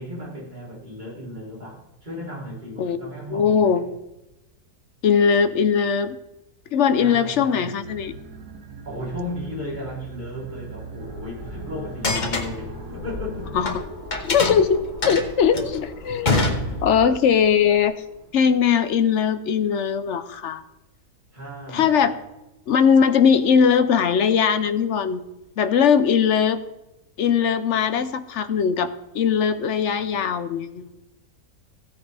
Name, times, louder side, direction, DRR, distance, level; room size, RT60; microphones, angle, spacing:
voice 1, 0.0-3.8 6.9-7.7 8.8-13.6 16.5-16.8 21.3-22.0, left 1 dB, 30° right, -5 dB, 3.7 m, -35 dB
voice 2, 3.3-3.9 5.0-6.2 6.7-8.1 13.5-13.8 14.2-16.4 16.8-18.0 18.3-20.6 21.7-22.2 22.7-25.2 25.6-26.6 27.2-30.9, left 7 dB, 60° left, 11 dB, 0.9 m, -20 dB
sound 1, 7.8-13.8, right 3 dB, 90° right, 1.7 m, -40 dB
sound 2, 11.0-18.8, left 2 dB, 15° left, 3.0 m, -41 dB
sound 3, 11.9-13.8 14.1-17.2, left 2 dB, 30° left, 1.4 m, -25 dB
16.0 x 9.3 x 3.4 m, 0.97 s
omnidirectional pair, 1.6 m